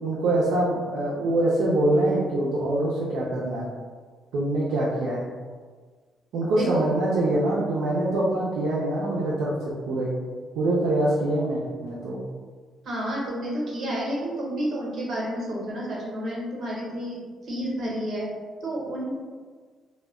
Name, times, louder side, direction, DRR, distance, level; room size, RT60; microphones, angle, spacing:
voice 1, 0.0-3.7 4.3-5.3 6.3-9.5 9.9-10.1 10.5-12.2, right 1 dB, 90° right, -6 dB, 0.5 m, -24 dB
voice 2, 6.5-6.9 12.8-17.2 17.4-18.3 18.6-19.1, right 1 dB, 60° right, -5 dB, 0.9 m, -30 dB
2.1 x 2.1 x 3.4 m, 1.5 s
cardioid pair, 90°, 0 cm